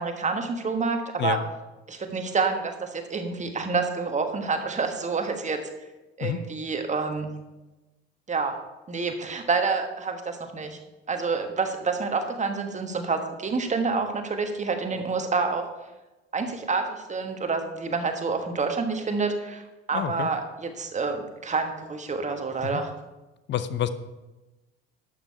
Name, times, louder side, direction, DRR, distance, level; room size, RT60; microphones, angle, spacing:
voice 1, 0.0-1.4 1.9-5.6 6.2-7.3 8.3-8.5 8.9-10.8 11.1-15.6 16.3-22.9, right 4 dB, 20° right, 6 dB, 1.4 m, -28 dB
voice 2, 19.9-20.3 22.7-22.8 23.5-23.9, left 11 dB, 35° left, 13 dB, 0.7 m, -28 dB
11.5 x 7.6 x 4.4 m, 1.1 s
figure-of-eight pair, 55°, 32 cm